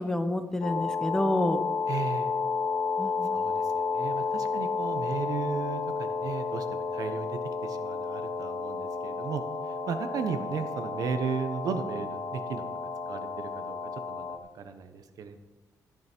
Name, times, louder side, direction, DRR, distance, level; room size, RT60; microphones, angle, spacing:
voice 1, 0.0-1.6 3.0-3.4, left 1 dB, 10° left, 8 dB, 0.8 m, -29 dB
sound 1, 0.6-14.4, left 4 dB, 65° left, 1.1 m, -32 dB
voice 2, 1.9-2.3 3.3-3.6 3.9-9.4 9.9-12.7 13.1-15.4, right 6 dB, 70° right, 8 dB, 1.2 m, -35 dB
13.0 x 10.5 x 4.6 m, 1.1 s
wide cardioid pair, 155°, 7 cm